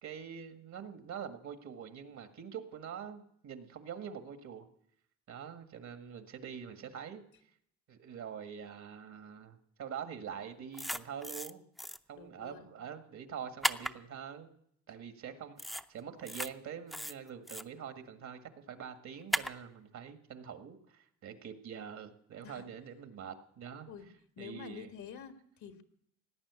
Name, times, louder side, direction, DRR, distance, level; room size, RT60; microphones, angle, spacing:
voice 1, 0.0-4.7 5.3-7.2 7.9-11.6 12.1-14.5 14.9-23.9 24.4-24.9, right 8 dB, 65° right, 7 dB, 1.8 m, -45 dB
sound 1, 10.7-11.5 11.8-12.0 13.6-13.9 15.6-15.8 16.2-16.5 16.9-17.6 19.3-19.5, equal, ahead, 0.6 m, -35 dB
voice 2, 12.1-12.8 22.4-22.6 23.9-24.1 24.4-25.8, left 7 dB, 75° left, 7 dB, 1.8 m, -48 dB
17.5 x 9.4 x 8.2 m, 0.70 s
cardioid pair, 90°, 30 cm